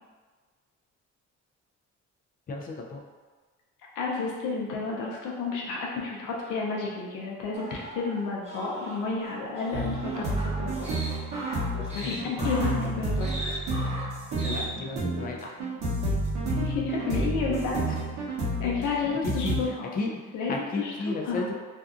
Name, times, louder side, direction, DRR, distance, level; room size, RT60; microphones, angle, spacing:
voice 1, 2.5-3.0 11.8-12.7 14.4-15.6 17.9-18.0 18.8-21.5, left 3 dB, 30° left, 0 dB, 0.4 m, -35 dB
voice 2, 4.0-10.9 11.9-13.5 16.4-17.9 18.6-19.9 20.3-21.5, left 4 dB, 90° left, -3 dB, 0.6 m, -31 dB
sound 1, 7.5-14.7, right 1 dB, 20° right, 0.7 m, -39 dB
sound 2, 9.7-19.6, right 1 dB, 60° right, 0.9 m, -30 dB
2.6 x 2.4 x 2.4 m, 1.4 s
cardioid pair, 90°, 30 cm